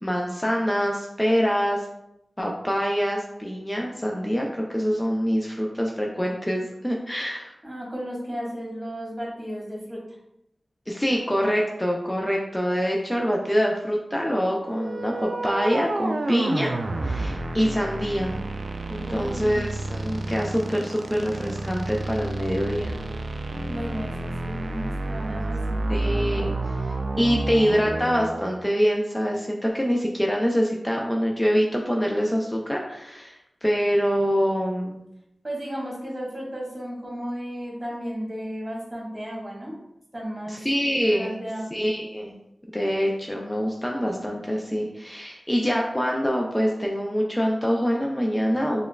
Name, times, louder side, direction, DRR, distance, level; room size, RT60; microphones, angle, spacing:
voice 1, 0.0-1.9 2.4-7.5 10.9-16.7 17.0-18.3 18.9-22.9 25.9-35.0 40.5-41.3 41.7-42.3 42.7-48.9, equal, 15° left, -1 dB, 0.4 m, -25 dB
voice 2, 7.6-10.0 19.0-19.6 23.7-25.9 35.4-39.7 40.1-41.7, equal, 30° right, -3 dB, 1.4 m, -34 dB
sound 1, 14.7-28.5, right 2 dB, 80° right, 0.3 m, -30 dB
5.0 x 2.3 x 2.2 m, 0.83 s
cardioid pair, 45°, 0 cm